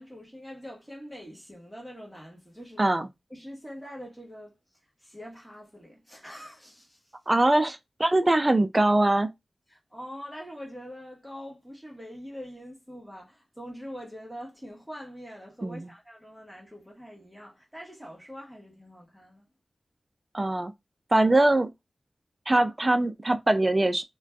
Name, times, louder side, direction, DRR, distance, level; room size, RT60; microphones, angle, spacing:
voice 1, 0.0-3.0 3.3-4.6 5.0-7.1 9.7-19.5, equal, 5° right, 1.1 m, -44 dB
voice 2, 7.3-9.3 15.6-15.9 20.3-20.7 21.1-21.7 22.5-24.0, right 2 dB, 35° right, 0.4 m, -22 dB
2.4 x 2.2 x 3.4 m
cardioid pair, 45°, 0 cm